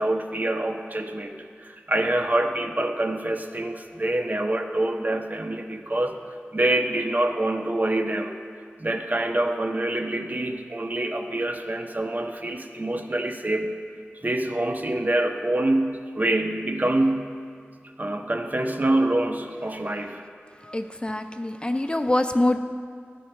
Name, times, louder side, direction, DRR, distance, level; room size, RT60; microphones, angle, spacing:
voice 1, 0.0-8.4 8.8-13.7 14.2-17.3 18.0-20.2, right 1 dB, 40° right, 5 dB, 0.6 m, -26 dB
voice 2, 20.6-22.6, left 1 dB, 25° left, 7 dB, 0.3 m, -25 dB
13.5 x 5.4 x 2.2 m, 2.1 s
wide cardioid pair, 50°, 4 cm